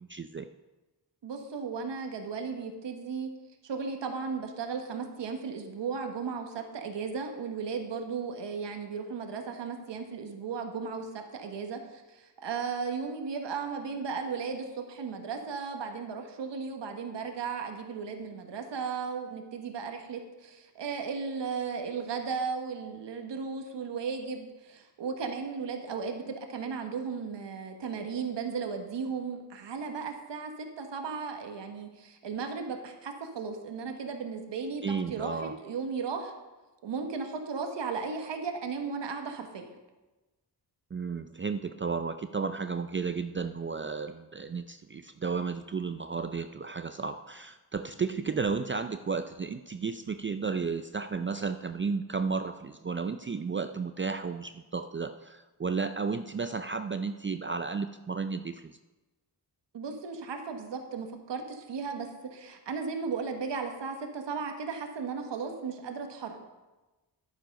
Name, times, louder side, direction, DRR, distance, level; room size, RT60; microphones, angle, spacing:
voice 1, 0.1-0.5 34.8-35.5 40.9-58.8, right 5 dB, 30° right, 9 dB, 0.5 m, -33 dB
voice 2, 1.2-3.3 3.6-34.8 35.1-36.3 36.8-39.7 59.7-66.4, right 5 dB, 80° right, 5 dB, 1.3 m, -35 dB
10.5 x 9.0 x 5.2 m, 1.1 s
cardioid pair, 55°, 42 cm